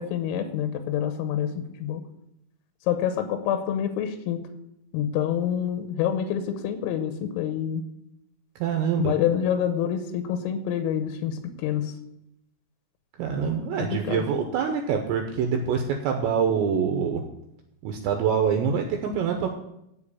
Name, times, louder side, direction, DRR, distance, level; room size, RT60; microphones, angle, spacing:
voice 1, 0.0-2.0 2.9-4.4 4.9-7.8 9.0-11.9 13.9-14.3, left 9 dB, 90° left, 9 dB, 3.6 m, -27 dB
voice 2, 8.6-9.1 13.2-17.2 17.8-19.5, right 7 dB, 80° right, 4 dB, 2.8 m, -25 dB
12.0 x 4.8 x 8.5 m, 0.82 s
omnidirectional pair, 5.9 m